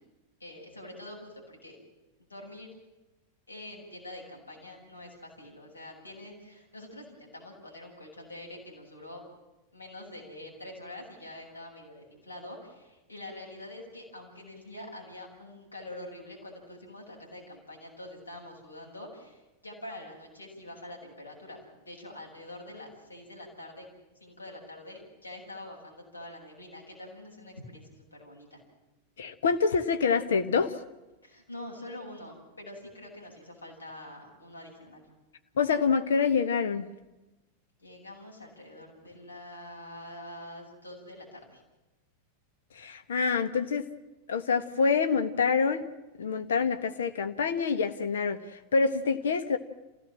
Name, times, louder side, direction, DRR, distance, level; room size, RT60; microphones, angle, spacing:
voice 1, 0.4-1.8 2.2-2.7 3.5-9.2 9.7-21.6 21.8-23.9 24.2-28.6 31.2-35.0 37.8-41.6, left 1 dB, 80° left, -1 dB, 7.5 m, -45 dB
voice 2, 29.2-30.7 35.6-36.8 42.7-43.9 44.3-45.8 46.2-49.6, left 5 dB, 65° left, 10 dB, 1.4 m, -26 dB
27.0 x 17.0 x 7.5 m, 1.0 s
figure-of-eight pair, 90°, 0 cm